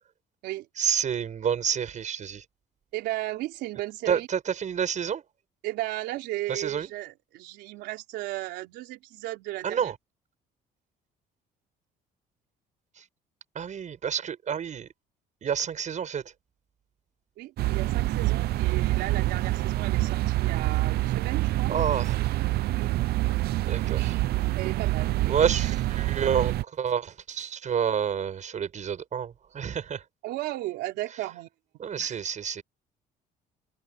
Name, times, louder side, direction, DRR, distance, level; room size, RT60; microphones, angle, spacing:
voice 1, 0.8-2.4 4.1-5.2 6.5-6.9 9.6-9.9 13.0-13.1 13.5-14.9 15.4-16.2 21.7-22.2 23.7-24.2 25.2-30.0 31.8-32.6, right 8 dB, 45° right, 7.5 m, -29 dB
voice 2, 2.9-4.3 5.6-9.9 17.4-21.7 22.7-23.0 24.6-25.6 30.2-31.5 32.0-32.2, right 16 dB, 90° right, 3.8 m, -35 dB
sound 1, 17.6-26.6, right 17 dB, 70° right, 0.8 m, -26 dB
open air
cardioid pair, 110°, 17 cm